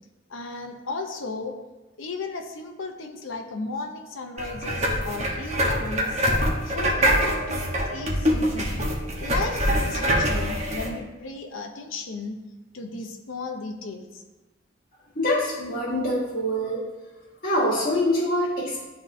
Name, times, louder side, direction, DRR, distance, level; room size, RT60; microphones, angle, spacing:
voice 1, 0.3-1.6 2.0-6.2 6.6-8.8 9.2-12.4 12.7-14.2, left 3 dB, 90° left, 4 dB, 0.8 m, -35 dB
sound 1, 4.4-10.9, equal, 35° right, 1.1 m, -24 dB
voice 2, 15.1-16.8 17.4-18.8, left 1 dB, 45° left, -8 dB, 1.7 m, -24 dB
11.5 x 3.9 x 2.7 m, 1.1 s
head